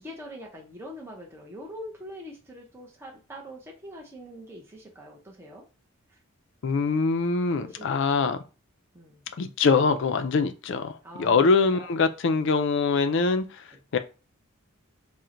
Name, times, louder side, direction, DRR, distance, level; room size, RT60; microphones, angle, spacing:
voice 1, 0.0-5.6 6.1-6.2 7.5-8.4 8.9-9.2 11.0-11.9 13.7-13.8, equal, 10° right, -2 dB, 0.6 m, -43 dB
voice 2, 6.6-8.4 9.4-10.9 11.2-13.5 13.9-14.0, left 4 dB, 55° left, 9 dB, 0.4 m, -23 dB
4.3 x 2.1 x 3.7 m, 0.33 s
head